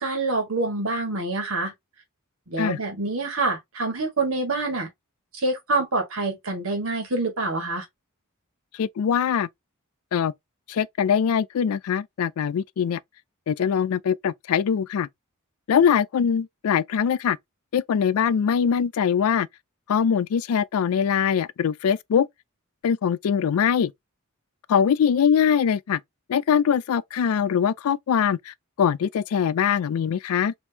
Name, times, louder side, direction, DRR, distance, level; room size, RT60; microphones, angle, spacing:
voice 1, 0.0-1.7 2.5-4.9 5.3-7.8, right 2 dB, 70° right, 1.6 m, -26 dB
voice 2, 8.7-9.5 10.1-10.3 10.7-13.0 13.5-15.1 15.7-17.4 17.7-19.5 19.9-22.3 22.8-23.9 24.7-26.0 26.3-30.5, left 7 dB, 75° left, 0.3 m, -22 dB
3.5 x 3.0 x 2.7 m
head